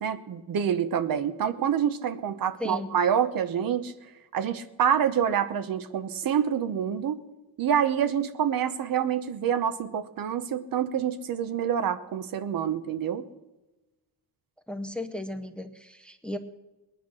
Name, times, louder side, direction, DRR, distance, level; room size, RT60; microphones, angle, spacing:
voice 1, 0.0-3.9 4.3-7.2 7.6-13.2, right 8 dB, 60° right, 11 dB, 1.0 m, -27 dB
voice 2, 14.7-16.4, left 1 dB, 5° left, 8 dB, 0.7 m, -35 dB
20.0 x 10.0 x 6.3 m, 1.1 s
wide cardioid pair, 165°, 38 cm